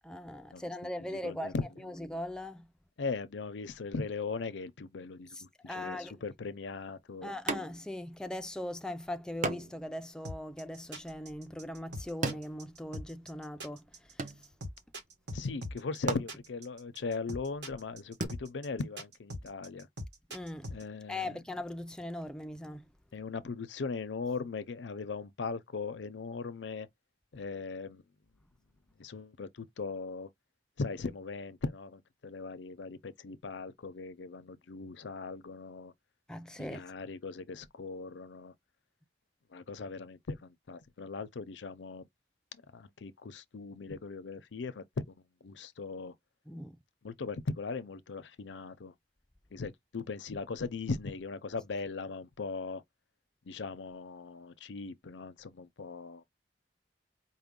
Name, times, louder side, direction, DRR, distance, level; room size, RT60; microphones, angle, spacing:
voice 1, 0.0-1.5 1.8-2.7 5.3-6.2 7.2-13.8 20.3-20.7 21.1-22.9 36.3-36.8 46.5-46.8, left 1 dB, 5° left, 0.3 m, -40 dB
voice 2, 1.0-1.8 3.0-7.3 15.3-19.9 20.7-21.4 23.1-26.9 27.3-28.0 29.0-30.3 30.8-35.9 36.6-38.5 39.5-42.0 42.5-45.2 45.4-46.1 47.0-48.9 49.5-52.8 53.5-56.2, left 4 dB, 90° left, 0.6 m, -39 dB
sound 1, 7.5-8.1 8.4-8.5 9.4-13.3 13.7-14.9 15.6-15.7 16.0-18.3, right 3 dB, 45° right, 0.8 m, -39 dB
sound 2, 10.2-20.8, equal, 70° right, 1.5 m, -42 dB
4.7 x 2.1 x 3.6 m
head